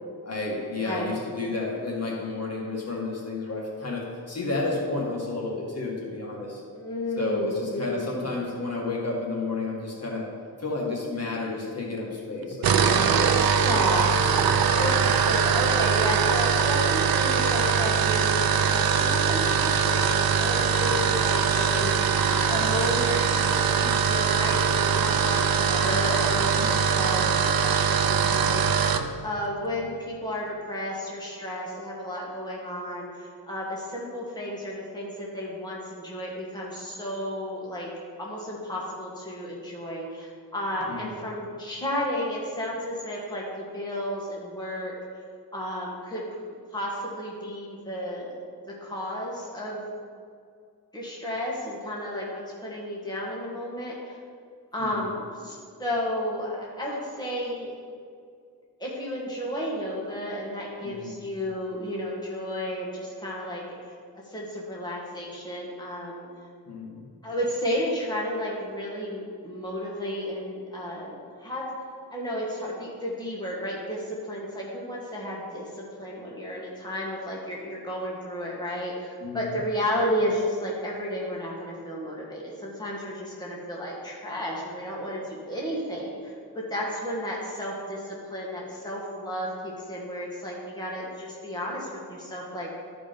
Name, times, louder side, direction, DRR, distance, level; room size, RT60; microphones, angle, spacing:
voice 1, 0.2-6.6 7.2-10.2 10.6-13.4 25.1-25.5 26.5-26.9 40.9-41.1 54.8-55.1 60.8-61.2 66.7-67.1 79.2-79.5, left 3 dB, 40° left, -4 dB, 2.1 m, -31 dB
voice 2, 0.8-1.1 6.7-8.3 13.5-14.2 14.8-22.1 22.5-28.6 29.2-37.9 38.2-45.0 45.5-46.4 46.7-48.4 48.7-49.8 50.9-54.0 54.7-57.8 58.8-63.7 64.3-66.3 67.2-71.7 72.1-92.8, equal, 10° left, -5 dB, 2.0 m, -32 dB
sound 1, 12.5-29.1, right 6 dB, 70° right, 0.6 m, -22 dB
13.0 x 5.1 x 5.4 m, 2.2 s
wide cardioid pair, 95°, 37 cm